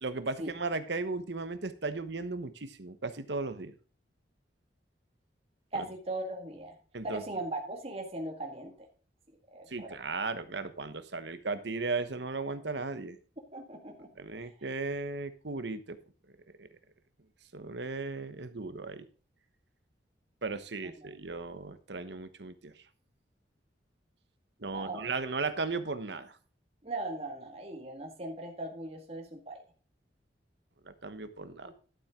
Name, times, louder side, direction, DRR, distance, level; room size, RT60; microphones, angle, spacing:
voice 1, 0.0-3.7 5.7-5.8 6.9-7.2 9.7-13.2 14.2-16.0 16.6-16.7 17.5-19.1 20.4-22.7 24.6-26.3 30.8-31.7, right 3 dB, 70° right, 11 dB, 1.1 m, -36 dB
voice 2, 5.7-6.8 7.0-8.9 9.5-10.0 13.5-14.1 21.0-21.1 24.7-25.1 26.8-29.6 31.6-31.7, right 2 dB, 35° right, 1 dB, 1.9 m, -39 dB
12.5 x 7.4 x 3.7 m, 0.39 s
head